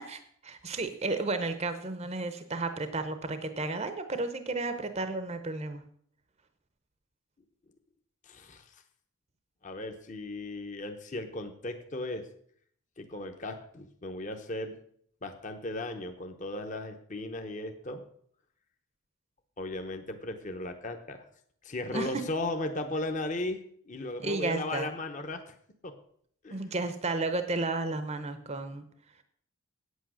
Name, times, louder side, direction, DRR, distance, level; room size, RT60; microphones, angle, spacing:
voice 1, 0.1-5.8 21.9-22.1 24.2-24.9 26.5-28.8, right 3 dB, 30° right, 9 dB, 0.7 m, -33 dB
voice 2, 8.3-8.6 9.6-12.3 13.0-14.7 15.2-18.0 19.6-21.2 21.6-23.6 23.9-25.5 25.8-25.9 26.4-26.7, left 2 dB, 35° left, 6 dB, 0.8 m, -36 dB
8.7 x 8.3 x 6.2 m, 0.63 s
head